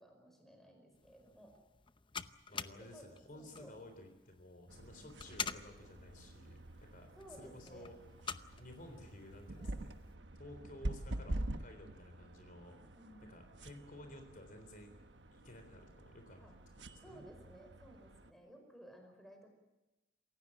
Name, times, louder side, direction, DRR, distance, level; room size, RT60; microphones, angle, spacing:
voice 1, 0.0-1.5 2.8-3.7 4.8-5.1 7.2-7.9 9.5-9.8 12.9-13.3 16.4-16.5 17.0-19.5, right 1 dB, ahead, 3 dB, 5.1 m, -57 dB
sound 1, 0.9-10.1, left 6 dB, 30° left, 0.7 m, -49 dB
voice 2, 2.5-8.0 8.6-9.9 10.4-12.8 13.3-15.0 15.3-16.5 16.8-17.2, left 1 dB, 50° left, 6 dB, 3.8 m, -54 dB
sound 2, 4.7-18.3, right 1 dB, 90° right, 1.2 m, -47 dB
28.0 x 16.0 x 8.7 m, 1.0 s
head